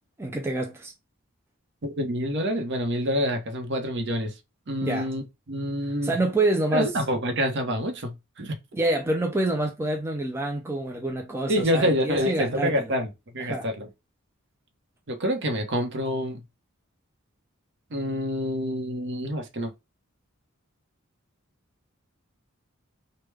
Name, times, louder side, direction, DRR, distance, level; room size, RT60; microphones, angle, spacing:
voice 1, 0.2-0.9 4.8-5.1 6.0-6.9 8.7-12.9 13.4-13.7, right 2 dB, 10° right, 0.4 m, -27 dB
voice 2, 1.8-4.3 4.7-6.1 6.7-8.6 11.5-13.1 13.3-13.9 15.1-16.4 17.9-19.7, equal, 55° right, 0.7 m, -27 dB
3.2 x 2.1 x 3.3 m
head